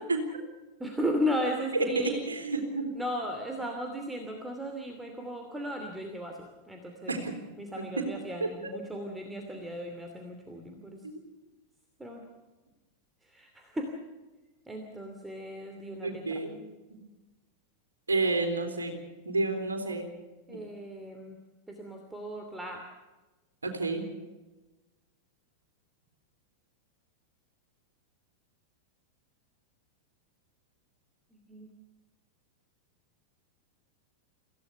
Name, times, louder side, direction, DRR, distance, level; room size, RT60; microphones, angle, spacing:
voice 1, 0.8-2.2 2.9-7.2 7.6-11.1 12.0-12.3 13.2-13.9 14.7-16.4 20.5-21.4 21.7-22.8 31.3-31.7, equal, 5° right, 3 dB, 2.8 m, -36 dB
voice 2, 1.7-2.9 7.1-7.3 8.6-8.7 11.0-11.2 16.0-16.6 16.9-17.0 18.1-18.9 19.2-20.1 20.5-20.6 23.6-24.1, right 3 dB, 75° right, 5 dB, 3.7 m, -30 dB
26.5 x 16.0 x 6.9 m, 1.2 s
figure-of-eight pair, 90°, 0 cm